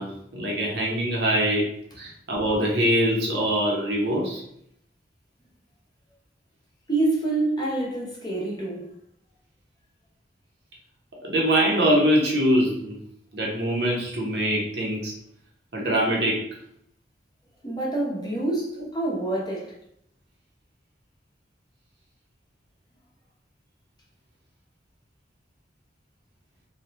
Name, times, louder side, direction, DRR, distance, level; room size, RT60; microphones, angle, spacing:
voice 1, 0.0-4.4 11.2-13.0 13.3-15.1 15.7-16.5, equal, 70° right, 0.9 m, -23 dB
voice 2, 6.9-8.9 17.6-19.7, right 2 dB, 25° left, 0.8 m, -27 dB
2.8 x 2.3 x 3.3 m
head